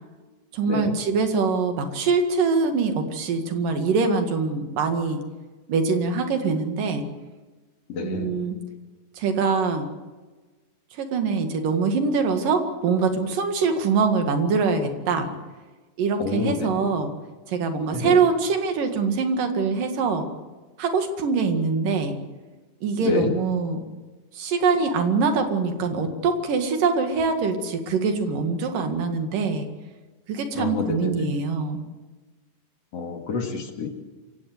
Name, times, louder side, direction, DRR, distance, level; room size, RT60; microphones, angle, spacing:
voice 1, 0.5-5.2 5.7-7.0 8.0-8.6 9.2-9.9 11.0-15.3 16.0-17.1 17.5-20.3 20.8-22.2 22.8-23.8 24.4-29.7 30.3-31.8, right 4 dB, 80° right, 6 dB, 3.6 m, -23 dB
voice 2, 8.0-8.3 16.2-16.7 17.9-18.1 23.0-23.3 30.6-31.2 32.9-34.0, left 5 dB, 50° left, 4 dB, 3.0 m, -28 dB
27.0 x 16.5 x 8.0 m, 1.3 s
omnidirectional pair, 3.8 m